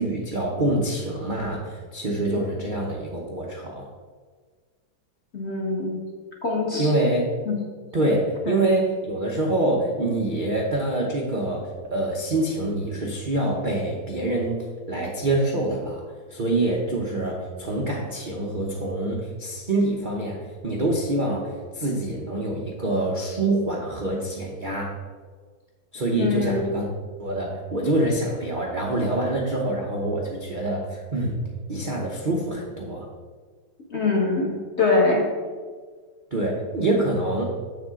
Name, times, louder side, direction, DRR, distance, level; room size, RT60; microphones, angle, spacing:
voice 1, 0.0-3.9 6.8-7.3 7.9-14.6 14.9-16.0 16.3-24.9 25.9-26.8 27.2-31.4 31.7-33.1 36.3-37.4, right 2 dB, 55° right, -2 dB, 0.5 m, -25 dB
voice 2, 5.3-6.0 6.4-6.9 7.5-7.6 8.5-8.6 26.2-26.7 33.9-35.2, left 3 dB, 35° left, -2 dB, 1.4 m, -23 dB
7.5 x 7.0 x 3.7 m, 1.6 s
omnidirectional pair, 2.3 m